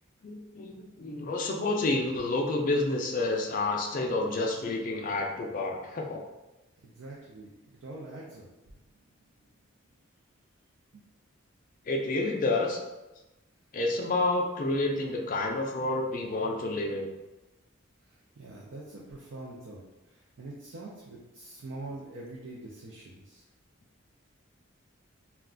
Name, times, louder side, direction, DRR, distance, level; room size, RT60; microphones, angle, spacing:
voice 1, 0.2-6.2 11.9-12.8 13.7-17.1, left 2 dB, 40° left, 2 dB, 0.3 m, -29 dB
voice 2, 6.8-8.8 10.9-11.0 18.0-23.4, right 2 dB, 65° right, -5 dB, 0.4 m, -44 dB
2.3 x 2.2 x 3.6 m, 1.0 s
head